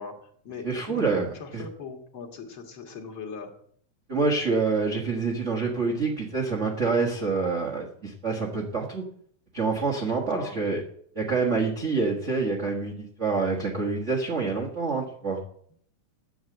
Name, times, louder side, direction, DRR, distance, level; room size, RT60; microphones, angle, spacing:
voice 1, 0.0-1.0 1.3-3.5 10.3-10.6, left 5 dB, 45° left, 2 dB, 1.9 m, -40 dB
voice 2, 0.6-1.3 1.5-1.6 4.1-9.0 9.5-10.8 11.1-15.4, right 4 dB, 90° right, 0 dB, 0.6 m, -27 dB
9.3 x 7.9 x 7.8 m, 0.63 s
omnidirectional pair, 4.2 m